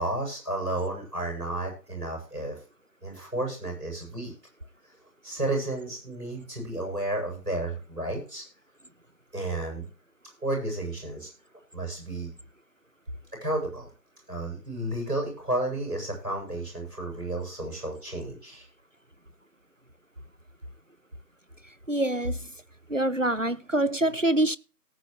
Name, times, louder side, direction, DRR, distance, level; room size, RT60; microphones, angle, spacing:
voice 1, 0.0-2.6 3.0-4.3 5.2-8.4 9.3-9.9 10.4-11.3 11.7-12.3 13.4-13.9 14.3-18.7, right 1 dB, 75° right, 7.9 m, -32 dB
voice 2, 21.9-22.4 22.9-24.6, right 1 dB, 50° right, 0.5 m, -25 dB
18.0 x 8.0 x 3.2 m
figure-of-eight pair, 180°, 49 cm